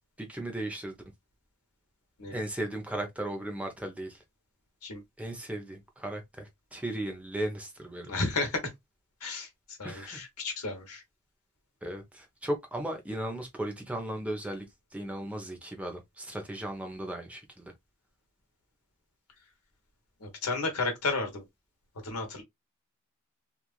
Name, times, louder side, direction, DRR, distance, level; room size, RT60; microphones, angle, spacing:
voice 1, 0.2-1.0 2.3-4.2 5.2-8.1 9.8-10.2 11.8-14.7 14.9-17.7, right 1 dB, 5° right, 0.7 m, -36 dB
voice 2, 8.1-8.6 9.2-11.0 20.2-21.4 22.0-22.4, left 3 dB, 80° left, 1.1 m, -32 dB
3.0 x 2.4 x 2.3 m
head